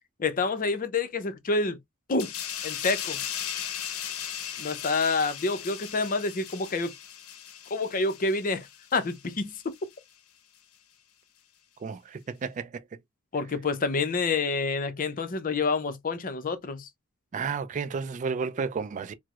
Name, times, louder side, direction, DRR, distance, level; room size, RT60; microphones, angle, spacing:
voice 1, 0.2-1.8 2.1-2.3 2.6-3.2 4.6-6.9 7.7-9.7 13.3-16.9, left 3 dB, 40° left, 0.5 m, -28 dB
sound 1, 2.2-9.4 9.7-9.9, left 9 dB, 85° left, 0.6 m, -37 dB
voice 2, 11.8-13.0 17.3-19.1, right 5 dB, 35° right, 0.3 m, -32 dB
4.5 x 2.0 x 2.3 m
head